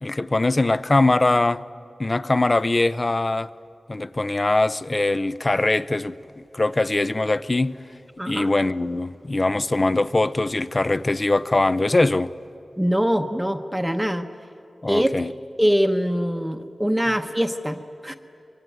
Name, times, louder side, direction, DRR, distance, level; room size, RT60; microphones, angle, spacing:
voice 1, 0.0-1.6 2.0-3.5 3.9-7.8 8.3-12.3 14.8-15.3, left 2 dB, 30° left, 0.6 m, -22 dB
voice 2, 8.2-8.5 12.8-14.3 14.9-15.1 15.6-18.2, equal, 5° right, 0.9 m, -23 dB
25.0 x 22.5 x 9.2 m
wide cardioid pair, 110°, 0 cm